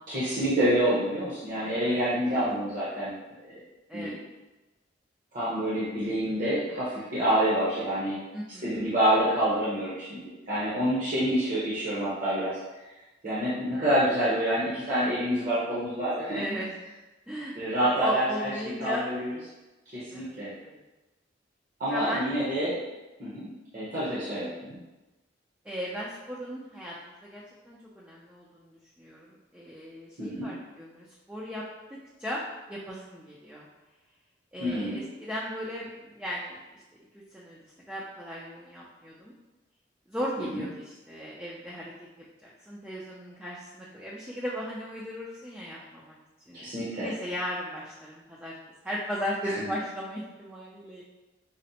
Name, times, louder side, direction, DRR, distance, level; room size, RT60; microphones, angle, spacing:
voice 1, 0.1-3.1 3.9-4.1 5.3-8.2 8.6-12.6 13.2-16.4 17.6-18.5 18.8-19.3 19.9-20.5 21.8-22.8 23.2-24.8 30.2-30.5 34.6-35.0 40.5-40.6 46.5-47.1 49.4-49.7, right 1 dB, 45° right, -10 dB, 0.8 m, -27 dB
voice 2, 1.6-2.0 2.3-2.5 3.9-4.2 8.3-8.9 16.3-16.7 17.3-17.5 18.0-19.0 20.1-20.8 21.9-22.3 24.1-24.3 25.6-31.6 32.2-32.4 32.7-33.7 34.5-36.8 37.3-39.3 40.1-41.9 42.4-46.2 46.5-46.6 47.0-48.5 48.8-51.0, equal, 5° right, -6 dB, 0.3 m, -36 dB
5.0 x 2.1 x 2.7 m, 1.1 s
head